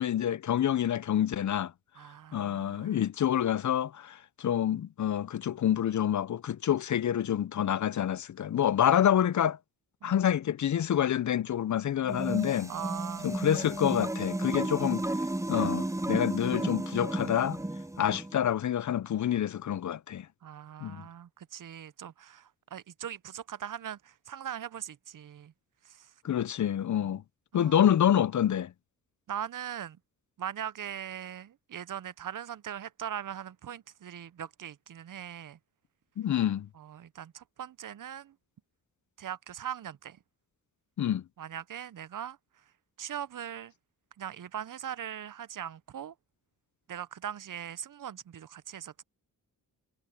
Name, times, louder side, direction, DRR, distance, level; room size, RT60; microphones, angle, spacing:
voice 1, 0.0-1.7 2.3-9.6 10.0-12.7 13.2-15.0 15.5-17.6 18.0-20.3 20.8-21.0 26.2-27.2 27.5-28.7 36.2-36.7 41.0-41.2, left 10 dB, 50° left, 0.6 m, -27 dB
voice 2, 2.0-3.0 10.0-10.2 12.7-13.4 14.6-14.9 20.4-25.5 25.8-26.1 27.0-27.2 27.5-27.9 29.3-30.0 30.4-35.6 36.7-38.3 39.2-40.2 41.4-42.4 43.0-43.7 44.2-46.1 46.9-49.0, right 9 dB, 55° right, 0.7 m, -40 dB
sound 1, 12.0-18.4, right 1 dB, 10° right, 0.9 m, -33 dB
cardioid pair, 50°, 38 cm